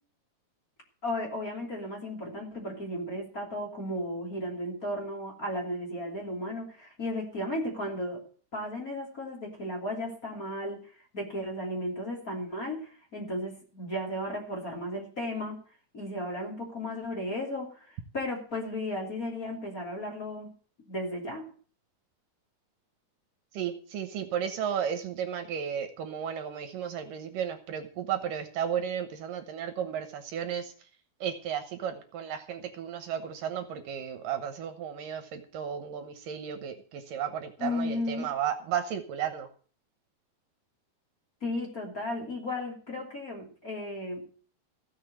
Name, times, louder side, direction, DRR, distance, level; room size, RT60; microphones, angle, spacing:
voice 1, 1.0-8.2 8.5-15.6 15.9-20.5 20.9-21.4 37.6-38.4 41.4-44.2, left 1 dB, 25° left, -1 dB, 3.2 m, -35 dB
voice 2, 23.5-30.7 31.2-39.5, right 8 dB, 70° right, 8 dB, 2.6 m, -34 dB
16.0 x 6.6 x 7.7 m, 0.41 s
omnidirectional pair, 4.3 m